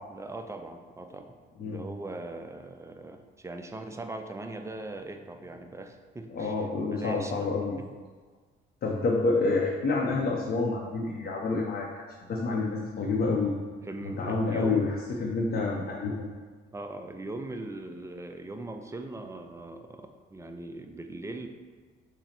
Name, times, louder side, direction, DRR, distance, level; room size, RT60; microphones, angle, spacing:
voice 1, 0.1-7.5 7.8-7.9 13.8-14.9 16.7-21.5, right 2 dB, 15° right, 5 dB, 0.4 m, -40 dB
voice 2, 6.3-7.8 8.8-11.9 12.3-13.5 14.0-14.9 15.2-16.3, left 3 dB, 50° left, -2 dB, 0.6 m, -28 dB
5.7 x 2.1 x 4.3 m, 1.5 s
cardioid pair, 90°, 20 cm